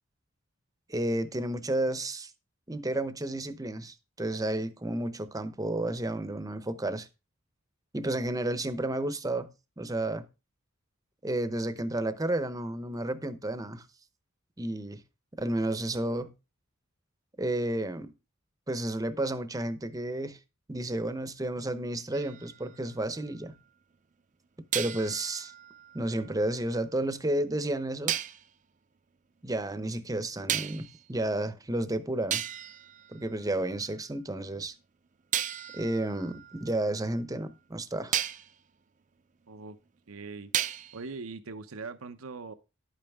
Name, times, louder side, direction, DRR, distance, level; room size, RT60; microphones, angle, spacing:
voice 1, 0.9-2.3 2.7-7.1 7.9-9.5 9.8-10.3 11.2-13.9 14.6-15.0 15.4-16.3 17.4-18.1 18.7-20.4 20.7-23.6 24.7-25.5 25.9-28.2 29.4-32.4 33.1-34.7 35.7-38.2, right 1 dB, 15° right, 0.8 m, -31 dB
sound 1, 22.1-23.5 24.7-26.8 28.1-28.5 30.5-31.0 31.8-31.9 32.3-33.9 35.3-37.5 38.1-38.5 40.5-41.1, right 10 dB, 35° right, 0.4 m, -35 dB
voice 2, 40.1-40.5 40.9-42.5, right 4 dB, 90° right, 0.8 m, -41 dB
11.0 x 8.9 x 3.6 m
head